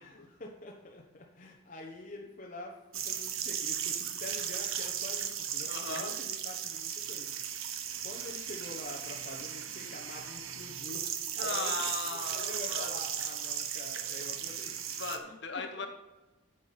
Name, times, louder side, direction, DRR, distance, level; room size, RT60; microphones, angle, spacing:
voice 1, 0.0-7.3 8.0-11.7 12.3-14.8 15.2-15.3 15.8-15.9, left 2 dB, 40° left, -1 dB, 1.0 m, -46 dB
sound 1, 2.9-15.2, right 9 dB, 85° right, 0.9 m, -36 dB
voice 2, 5.7-6.1 11.4-13.0 15.0-15.9, left 4 dB, 55° left, 4 dB, 1.3 m, -38 dB
8.6 x 6.8 x 5.8 m, 1.1 s
head